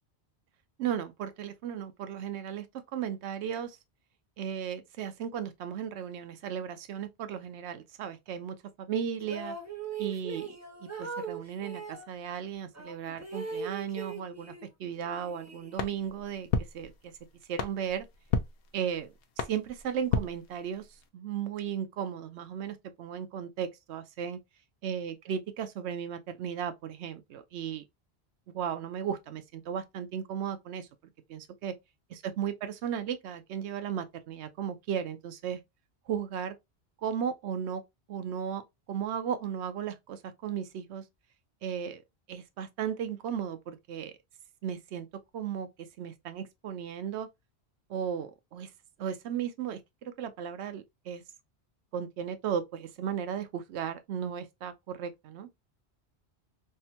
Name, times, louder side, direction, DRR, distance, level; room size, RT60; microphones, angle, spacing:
voice 1, 0.8-3.8 4.4-9.6 10.0-14.5 14.8-17.1 17.5-18.1 18.7-20.9 21.1-24.4 24.8-27.8 28.5-30.9 31.3-31.7 32.1-35.6 36.1-36.6 37.0-37.8 38.1-38.6 38.9-41.0 41.6-42.0 42.3-44.1 44.6-45.1 45.3-47.3 47.9-48.7 49.0-51.2 51.9-55.5, right 8 dB, 85° right, 0.8 m, -35 dB
sound 1, 9.2-12.1 12.7-14.7 15.0-16.1, right 5 dB, 20° right, 0.5 m, -40 dB
sound 2, 15.7-21.1, left 6 dB, 65° left, 0.7 m, -35 dB
3.4 x 2.1 x 2.7 m
omnidirectional pair, 1.1 m